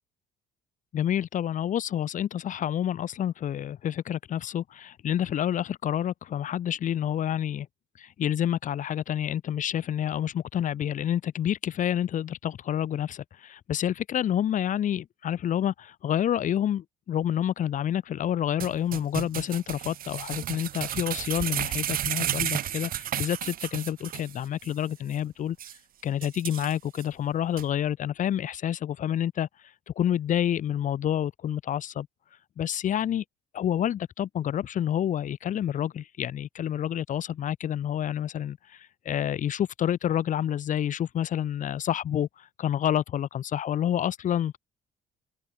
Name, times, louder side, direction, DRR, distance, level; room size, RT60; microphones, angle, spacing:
voice 1, 0.9-7.7 8.0-25.6 26.0-29.5 29.9-32.1 32.6-33.2 33.5-44.6, left 10 dB, 50° left, 1.0 m, -28 dB
sound 1, 18.6-24.3 24.6-24.7 25.1-25.2 25.6-25.8 26.2-27.0 27.6-27.7, right 11 dB, 60° right, 2.4 m, -32 dB
open air
cardioid pair, 110°, 17 cm